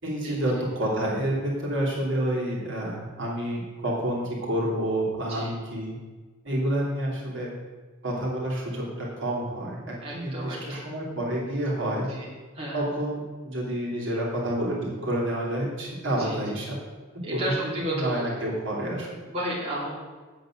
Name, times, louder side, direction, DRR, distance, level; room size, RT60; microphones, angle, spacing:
voice 1, 0.0-6.0 6.4-7.5 8.0-12.1 12.7-16.8 17.3-19.1, right 1 dB, 55° right, -3 dB, 3.3 m, -29 dB
voice 2, 10.0-10.8 12.1-12.2 12.5-12.9 16.0-16.4 17.2-18.2 19.3-19.9, right 1 dB, 30° right, -6 dB, 2.8 m, -32 dB
8.6 x 8.0 x 7.7 m, 1.3 s
head